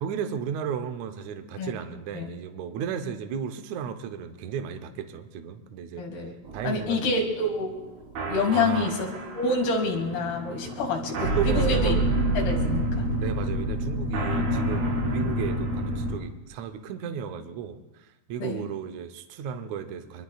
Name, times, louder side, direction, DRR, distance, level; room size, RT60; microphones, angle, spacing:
voice 1, 0.0-6.2 6.5-7.2 8.5-8.9 10.7-10.8 11.3-12.1 13.2-20.2, right 7 dB, 90° right, 7 dB, 1.6 m, -34 dB
voice 2, 6.0-6.3 6.6-7.7 8.3-9.0 9.4-11.9 12.4-13.1 18.4-18.7, left 3 dB, 75° left, 1 dB, 4.2 m, -27 dB
sound 1, 6.5-16.1, right 1 dB, 70° right, 5.4 m, -28 dB
24.5 x 22.0 x 2.4 m, 1.0 s
omnidirectional pair, 4.6 m